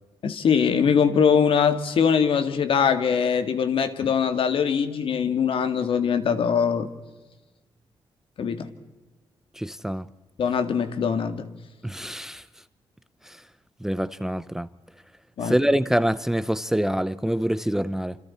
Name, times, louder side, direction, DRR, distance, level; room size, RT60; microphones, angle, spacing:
voice 1, 0.2-6.9 8.4-8.7 10.4-11.5 15.4-15.6, left 7 dB, 65° left, 1.9 m, -22 dB
voice 2, 9.6-10.1 11.8-12.4 13.3-13.4 13.8-14.7 15.4-18.2, equal, 5° right, 0.6 m, -25 dB
27.5 x 26.5 x 4.3 m
cardioid pair, 125°, 10 cm